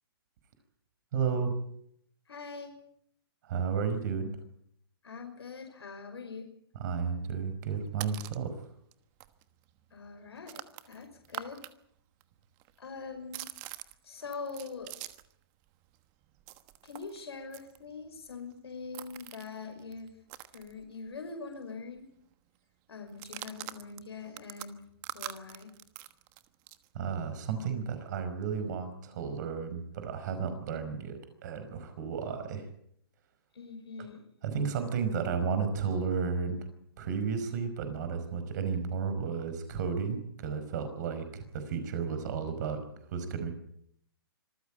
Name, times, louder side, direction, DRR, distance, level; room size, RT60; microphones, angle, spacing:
voice 1, 1.1-1.5 3.4-4.3 6.8-8.5 26.9-32.7 34.4-36.6 37.0-42.8 43.1-43.5, right 6 dB, 45° right, 9 dB, 5.1 m, -33 dB
voice 2, 2.3-2.7 5.0-6.5 9.9-11.6 12.8-13.4 14.0-14.9 16.8-20.1 20.5-22.0 22.9-24.8 25.1-25.7 33.5-34.3, left 4 dB, 90° left, 4 dB, 5.6 m, -43 dB
sound 1, 7.7-8.5 8.9-9.0 9.2-11.7 12.0-15.4 15.7-21.3 21.6-21.7 22.0-22.3 23.1-26.9, right 16 dB, 30° right, 1.2 m, -45 dB
26.0 x 14.5 x 8.8 m, 0.72 s
hypercardioid pair, 150°, 13 cm